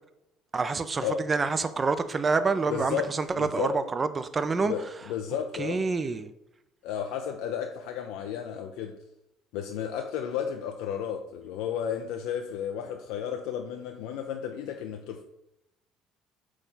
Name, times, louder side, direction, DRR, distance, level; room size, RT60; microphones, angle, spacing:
voice 1, 0.5-4.7 5.6-6.3, right 4 dB, 30° right, 0.5 m, -27 dB
voice 2, 2.7-3.1 3.4-3.7 4.6-5.8 6.8-8.9 9.5-15.2, left 8 dB, 65° left, 0.4 m, -33 dB
6.2 x 4.4 x 3.8 m
figure-of-eight pair, 60°, 0 cm